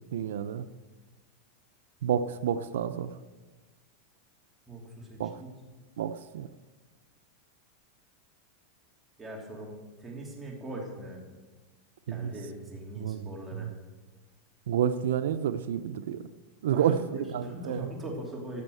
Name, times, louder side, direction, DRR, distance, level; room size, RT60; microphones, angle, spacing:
voice 1, 0.1-0.7 2.0-3.1 5.2-5.3 6.0-6.5 12.1-12.3 13.0-13.7 14.7-16.3 16.6-17.0 17.3-17.9, right 9 dB, 85° right, 11 dB, 0.6 m, -29 dB
voice 2, 4.7-5.6 9.2-11.2 12.1-13.7 16.7-18.6, right 1 dB, 10° right, -2 dB, 2.9 m, -41 dB
13.5 x 7.1 x 7.8 m, 1.3 s
supercardioid pair, 160°, 0 cm